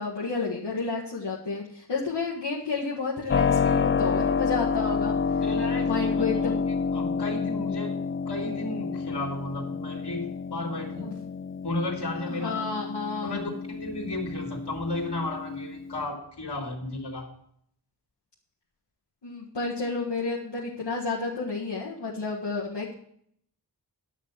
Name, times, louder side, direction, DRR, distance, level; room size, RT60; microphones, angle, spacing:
voice 1, 0.0-5.1 5.8-6.6 11.0-11.2 12.3-13.4 19.2-22.9, left 4 dB, 90° left, -5 dB, 1.7 m, -31 dB
Keyboard (musical), 3.3-16.0, left 5 dB, 35° left, 0.4 m, -29 dB
voice 2, 5.4-7.9 8.3-11.1 11.6-12.7 13.2-17.3, left 2 dB, 70° left, 1 dB, 3.0 m, -34 dB
11.5 x 6.3 x 7.2 m, 0.66 s
wide cardioid pair, 60°, 41 cm